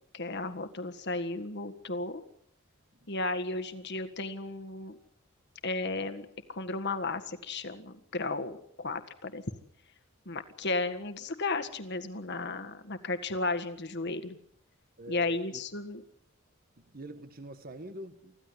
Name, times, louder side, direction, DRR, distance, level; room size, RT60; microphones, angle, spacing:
voice 1, 0.1-2.2 3.1-5.0 5.6-9.4 10.3-14.4 15.1-16.0, left 3 dB, 55° left, 9 dB, 1.7 m, -34 dB
voice 2, 15.0-15.6 16.8-18.4, right 1 dB, 45° right, 9 dB, 1.4 m, -44 dB
25.5 x 15.5 x 8.1 m, 0.72 s
head